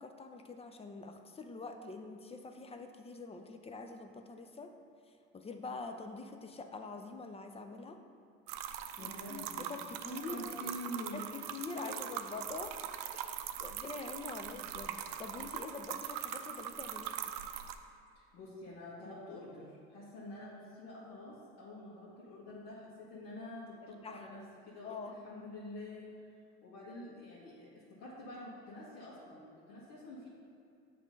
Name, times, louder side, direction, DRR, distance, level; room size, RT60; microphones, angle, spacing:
voice 1, 0.0-4.7 5.1-8.0 9.0-10.8 11.1-12.7 13.1-17.2 24.0-24.3 24.8-25.1, left 3 dB, 20° left, 6 dB, 0.5 m, -45 dB
sound 1, 8.5-17.8, right 10 dB, 75° right, 0.5 m, -42 dB
voice 2, 9.0-9.7 10.1-11.2 11.8-12.1 18.1-24.4 24.7-26.3 26.6-27.7 28.0-30.3, left 1 dB, 70° left, -9 dB, 1.6 m, -47 dB
7.3 x 3.4 x 5.3 m, 2.4 s
supercardioid pair, 90°, 30 cm